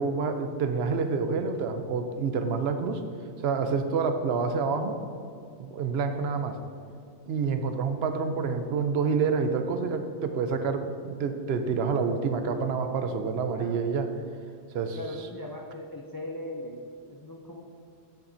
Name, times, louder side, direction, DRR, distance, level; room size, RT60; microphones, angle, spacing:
voice 1, 0.0-3.0 3.4-5.0 5.6-6.6 7.3-14.1 14.7-15.0, right 5 dB, 70° right, 7 dB, 0.8 m, -28 dB
voice 2, 14.9-17.6, left 1 dB, 35° left, 0 dB, 0.3 m, -39 dB
8.0 x 7.1 x 2.6 m, 2.4 s
omnidirectional pair, 1.1 m